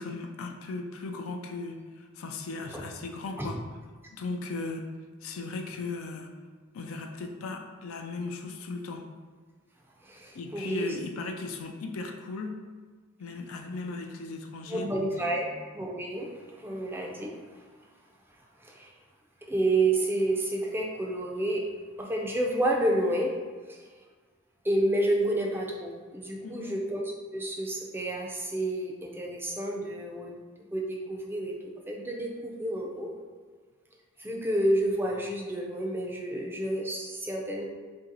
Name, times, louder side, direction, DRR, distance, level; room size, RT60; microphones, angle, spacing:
voice 1, 0.0-3.6 4.1-4.9 5.2-6.3 6.7-9.1 10.3-12.6 13.2-15.5 26.4-26.8, left 3 dB, 85° left, 4 dB, 0.4 m, -37 dB
voice 2, 10.0-11.0 14.7-15.5 15.7-17.6 18.6-18.9 19.5-21.7 22.0-23.4 23.7-23.8 24.6-27.0 27.3-30.4 30.7-31.5 31.9-33.1 34.2-37.7, right 1 dB, 10° right, -1 dB, 0.4 m, -30 dB
2.8 x 2.7 x 3.9 m, 1.5 s
head